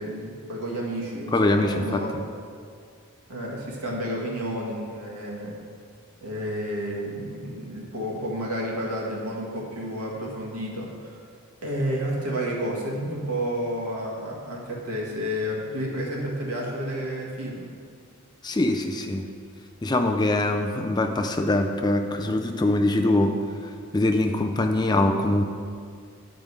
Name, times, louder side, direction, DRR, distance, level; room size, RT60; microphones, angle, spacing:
voice 1, 0.0-2.2 3.3-5.6 6.2-11.2 11.6-17.7, equal, 85° right, -3 dB, 1.8 m, -31 dB
voice 2, 1.3-2.0 18.4-19.3 19.8-23.4 23.9-25.5, left 2 dB, 20° left, 5 dB, 0.4 m, -23 dB
9.3 x 5.2 x 4.7 m, 2.1 s
head